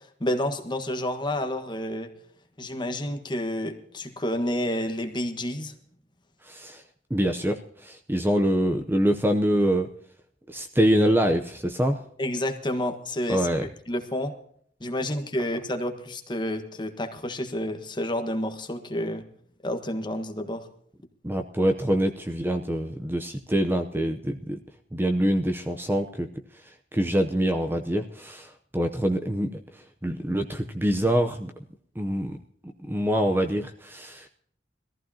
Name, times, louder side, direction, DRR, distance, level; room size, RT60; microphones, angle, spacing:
voice 1, 0.2-2.1 2.6-5.8 12.2-14.3 14.8-19.3 19.6-20.7, left 1 dB, 25° left, 6 dB, 1.4 m, -30 dB
voice 2, 6.5-6.8 7.1-9.9 10.5-12.0 13.3-13.7 21.2-24.6 24.9-26.3 26.9-29.6 30.0-31.5 32.0-32.4 32.9-34.3, equal, 10° right, 5 dB, 0.7 m, -25 dB
21.5 x 14.5 x 2.8 m, 0.63 s
head